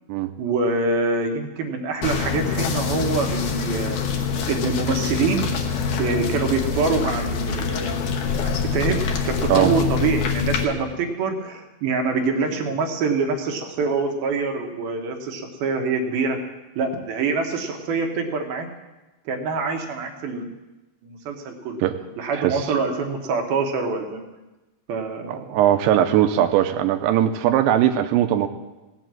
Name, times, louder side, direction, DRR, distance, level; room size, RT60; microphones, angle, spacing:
voice 1, 0.4-4.0 4.5-5.5 6.0-16.4 16.8-18.7 19.3-20.5 21.0-21.8 22.2-24.3 24.9-25.6, right 4 dB, 65° right, 4 dB, 2.8 m, -25 dB
sound 1, 2.0-10.6, left 5 dB, 65° left, 2.0 m, -25 dB
voice 2, 25.3-28.5, right 11 dB, 90° right, 7 dB, 3.0 m, -19 dB
17.0 x 8.3 x 7.6 m, 1.1 s
omnidirectional pair, 5.1 m